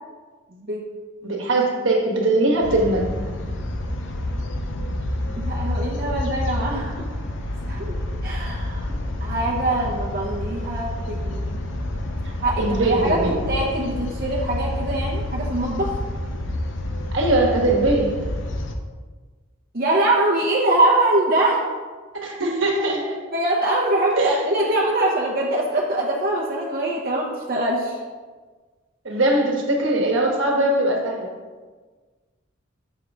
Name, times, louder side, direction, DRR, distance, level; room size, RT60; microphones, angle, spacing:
voice 1, 0.5-0.8 5.4-7.0 7.7-7.9 8.2-8.9 9.2-11.6 12.4-13.2 13.5-15.9 19.7-21.7 23.3-28.0, right 1 dB, 50° right, -3 dB, 0.8 m, -23 dB
voice 2, 1.2-3.1 12.6-13.4 17.1-18.3 22.2-23.2 24.2-24.4 29.0-31.3, right 2 dB, 75° right, 0 dB, 1.2 m, -21 dB
sound 1, 2.6-18.7, left 1 dB, 65° left, 0.6 m, -28 dB
6.3 x 5.2 x 3.5 m, 1.4 s
head